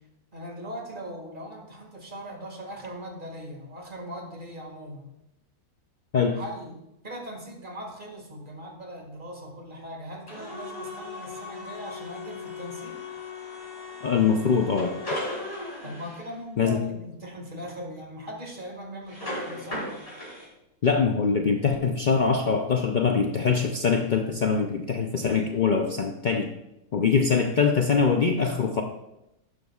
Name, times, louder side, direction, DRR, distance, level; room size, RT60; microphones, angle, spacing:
voice 1, 0.3-5.1 6.3-6.8 7.0-13.0 15.8-19.9, equal, 35° right, 1 dB, 2.0 m, -40 dB
sound 1, 10.3-16.3 19.1-20.5, left 2 dB, 25° left, 3.8 m, -37 dB
voice 2, 14.0-15.0 16.6-16.8 20.8-26.5 26.9-28.8, left 5 dB, 75° left, 3 dB, 0.4 m, -23 dB
12.0 x 11.5 x 2.3 m, 0.89 s
omnidirectional pair, 1.6 m